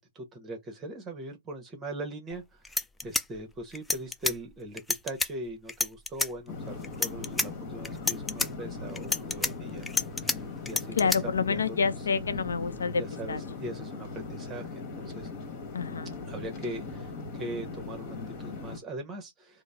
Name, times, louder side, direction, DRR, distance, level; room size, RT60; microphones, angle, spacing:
voice 1, 0.0-12.1 13.0-15.3 16.3-19.6, right 1 dB, 20° right, 1.0 m, -41 dB
sound 1, 2.3-2.4 2.6-4.4 4.8-5.3 5.7-6.3 6.8-7.5 7.8-8.5 9.0-10.4 10.7-11.2, left 3 dB, 10° left, 0.3 m, -29 dB
sound 2, 6.5-18.8, left 4 dB, 40° left, 1.4 m, -39 dB
voice 2, 11.0-13.0 13.3-13.4 15.7-16.1, left 5 dB, 80° left, 0.5 m, -28 dB
3.8 x 2.0 x 3.4 m
hypercardioid pair, 120°, 0 cm